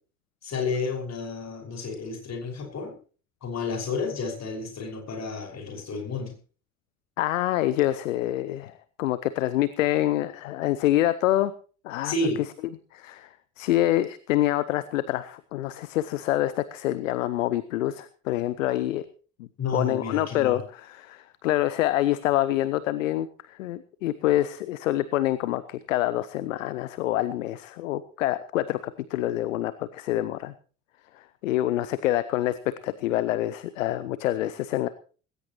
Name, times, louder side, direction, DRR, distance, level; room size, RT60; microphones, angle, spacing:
voice 1, 0.4-2.9 3.4-6.3 12.0-12.4 19.6-20.6, left 3 dB, 40° left, 4 dB, 5.8 m, -31 dB
voice 2, 7.2-11.5 11.8-12.1 12.9-13.3 13.6-19.1 19.4-28.8 29.1-30.5 31.1-34.9, left 14 dB, 70° left, 16 dB, 0.8 m, -26 dB
19.5 x 17.5 x 3.1 m, 0.38 s
figure-of-eight pair, 55°, 40 cm